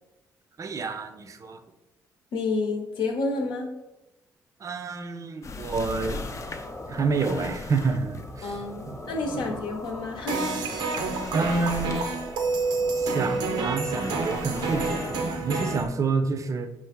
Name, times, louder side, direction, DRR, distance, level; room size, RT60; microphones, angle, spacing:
voice 1, 0.6-1.6 4.6-6.2 6.9-9.0 9.3-9.5 11.3-12.0 13.0-16.7, right 4 dB, 45° right, 9 dB, 0.5 m, -28 dB
voice 2, 2.3-3.7 8.4-10.6, left 3 dB, 75° left, 3 dB, 0.8 m, -29 dB
sound 1, 5.4-15.9, left 3 dB, 40° left, 0.5 m, -41 dB
sound 2, 6.0-15.2, left 2 dB, 25° left, 0.9 m, -42 dB
sound 3, 10.3-15.8, right 3 dB, 85° right, 0.7 m, -28 dB
5.8 x 2.5 x 3.6 m, 1.0 s
supercardioid pair, 65°, 8 cm